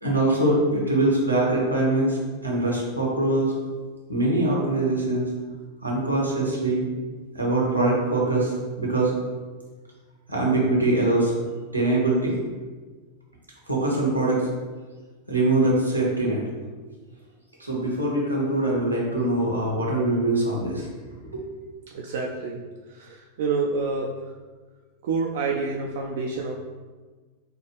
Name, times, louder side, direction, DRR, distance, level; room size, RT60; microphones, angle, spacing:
voice 1, 0.0-3.5 4.1-5.3 5.8-6.9 7.3-9.2 10.3-11.3 11.7-12.3 13.7-14.5 15.3-16.4 17.6-20.9 21.2-21.4, right 2 dB, 85° right, -3 dB, 0.9 m, -23 dB
voice 2, 21.9-22.6 22.9-24.1 25.0-26.5, right 4 dB, 55° right, -1 dB, 0.3 m, -28 dB
4.5 x 2.3 x 3.4 m, 1.4 s
figure-of-eight pair, 90°, 0 cm